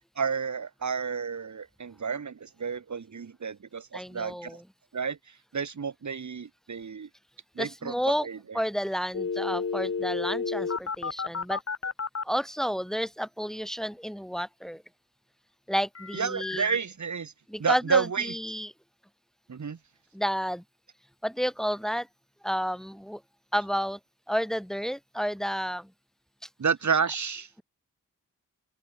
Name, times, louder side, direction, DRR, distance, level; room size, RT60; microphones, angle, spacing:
voice 1, 0.2-4.6 4.9-5.2 5.5-7.1 7.6-7.9 8.2-8.6 16.1-17.3 17.6-18.3 19.5-19.8 26.6-27.5, right 6 dB, 60° right, 2.9 m, -30 dB
voice 2, 3.9-4.6 7.6-8.3 8.5-11.6 12.2-14.8 15.7-16.7 17.5-18.7 20.1-20.6 21.2-22.1 22.4-23.2 23.5-24.0 24.3-25.9, equal, ahead, 4.0 m, -31 dB
sound 1, 9.1-12.2 16.0-16.8, left 5 dB, 50° left, 3.9 m, -31 dB
open air
wide cardioid pair, 120°, 32 cm